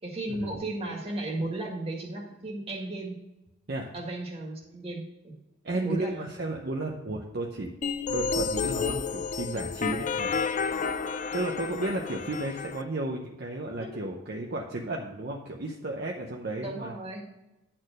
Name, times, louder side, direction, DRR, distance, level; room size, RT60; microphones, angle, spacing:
voice 1, 0.0-3.2 3.9-5.3 5.7-6.2 13.8-14.0 16.6-17.2, right 2 dB, 30° right, -1 dB, 1.9 m, -34 dB
voice 2, 5.6-7.7 8.1-10.3 10.6-10.8 11.3-16.9, right 2 dB, 50° right, 0 dB, 0.8 m, -33 dB
sound 1, 7.8-12.8, left 5 dB, 35° left, 0.4 m, -31 dB
10.0 x 4.4 x 6.3 m, 0.97 s
head